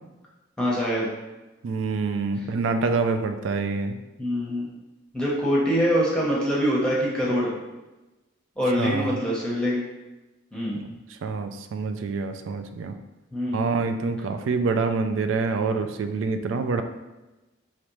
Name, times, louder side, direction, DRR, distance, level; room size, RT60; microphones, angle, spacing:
voice 1, 0.6-1.1 4.2-4.7 5.1-7.5 8.6-9.8 10.5-10.8 13.3-13.7 16.5-16.6, equal, 5° left, -6 dB, 0.8 m, -24 dB
voice 2, 1.6-4.0 8.8-9.1 11.2-12.9 13.5-16.8, right 4 dB, 80° right, 8 dB, 0.3 m, -26 dB
5.0 x 3.0 x 3.0 m, 1.1 s
head